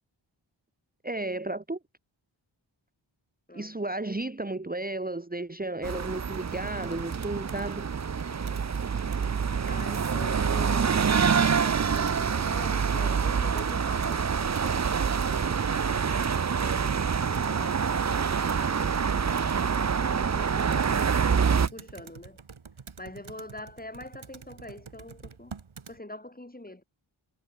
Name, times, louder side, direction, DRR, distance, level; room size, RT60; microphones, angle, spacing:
voice 1, 1.0-1.8 3.5-7.9, right 2 dB, 20° right, 1.4 m, -33 dB
voice 2, 3.5-3.8 8.2-8.6 9.6-21.1 21.5-22.4 23.0-25.6 25.9-26.8, left 1 dB, 20° left, 4.6 m, -45 dB
sound 1, 5.8-21.7, right 6 dB, 35° right, 0.7 m, -26 dB
Computer keyboard, 6.3-26.0, right 5 dB, 90° right, 6.1 m, -48 dB
wide cardioid pair, 50°, 47 cm